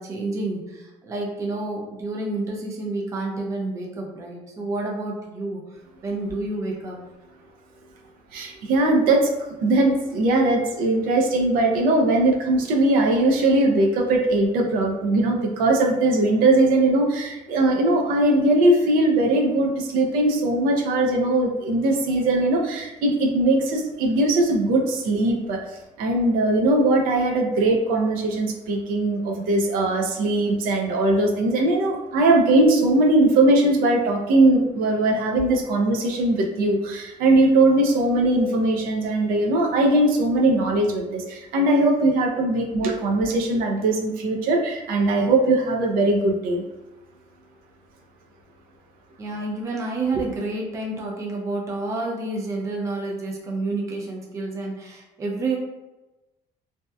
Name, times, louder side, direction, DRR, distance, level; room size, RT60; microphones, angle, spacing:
voice 1, 0.0-5.6 6.0-7.0 49.2-55.6, right 2 dB, 20° right, -2 dB, 0.4 m, -29 dB
voice 2, 8.3-9.3 9.6-25.6 26.0-46.6, right 2 dB, 80° right, 1 dB, 0.4 m, -20 dB
2.7 x 2.1 x 2.2 m, 1.0 s
cardioid pair, 175°, 15 cm